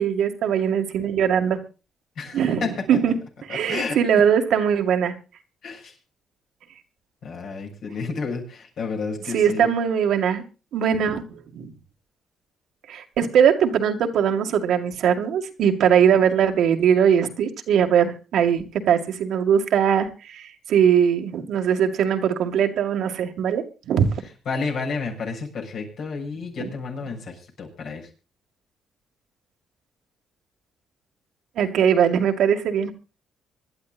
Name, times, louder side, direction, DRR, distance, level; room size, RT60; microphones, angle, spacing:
voice 1, 0.0-1.6 2.3-5.1 9.3-10.4 10.7-11.7 12.9-24.1 26.6-26.7 31.6-32.9, right 8 dB, 75° right, 4 dB, 2.2 m, -21 dB
voice 2, 2.2-3.0 3.5-4.0 5.6-5.9 7.2-9.7 24.5-28.0, left 4 dB, 65° left, 1 dB, 7.2 m, -31 dB
25.5 x 11.5 x 2.6 m, 0.32 s
cardioid pair, 90°, 0 cm